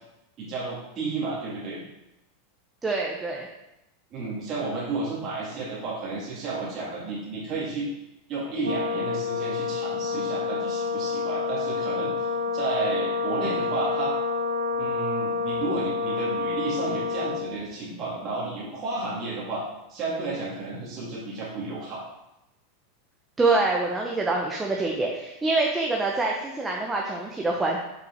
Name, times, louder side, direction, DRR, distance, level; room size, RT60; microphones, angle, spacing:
voice 1, 0.4-1.8 4.1-7.9 8.3-14.1 14.8-19.6 19.9-22.0, right 3 dB, 40° right, -6 dB, 2.2 m, -32 dB
voice 2, 2.8-3.5 23.4-27.8, right 3 dB, 15° right, -1 dB, 1.0 m, -25 dB
Brass instrument, 8.6-17.5, left 4 dB, 90° right, 1.6 m, -28 dB
5.9 x 5.1 x 4.5 m, 0.91 s
hypercardioid pair, 110°, 0 cm